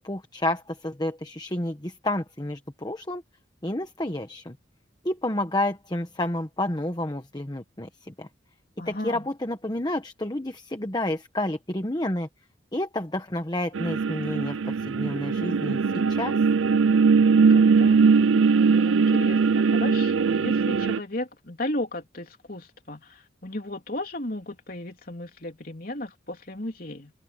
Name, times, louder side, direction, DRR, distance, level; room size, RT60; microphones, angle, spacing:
voice 1, 0.0-3.2 3.6-4.6 5.0-8.3 8.8-12.3 12.7-15.8 16.1-16.3, left 1 dB, 20° left, 1.2 m, -30 dB
voice 2, 8.8-9.3 17.3-27.1, left 1 dB, 50° left, 3.5 m, -35 dB
sound 1, 13.7-21.0, right 5 dB, 90° right, 0.5 m, -20 dB
head